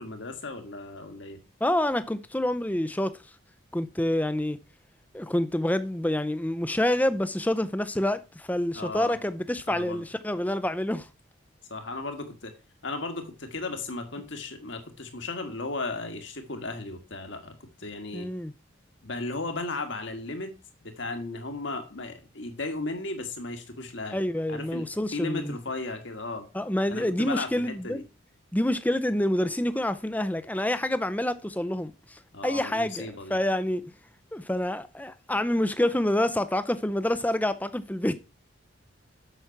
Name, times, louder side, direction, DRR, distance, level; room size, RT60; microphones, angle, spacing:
voice 1, 0.0-1.4 8.7-9.1 9.7-10.0 11.7-12.5 12.8-18.3 19.0-20.6 20.8-24.2 24.5-24.9 25.1-26.5 26.9-28.0 32.3-33.4, left 2 dB, 60° left, 1.7 m, -35 dB
voice 2, 1.6-3.2 3.7-4.6 5.1-11.1 18.1-18.5 24.1-25.6 26.5-28.0 28.5-33.9 34.3-38.1, left 1 dB, 10° left, 0.5 m, -27 dB
8.0 x 6.1 x 5.9 m
head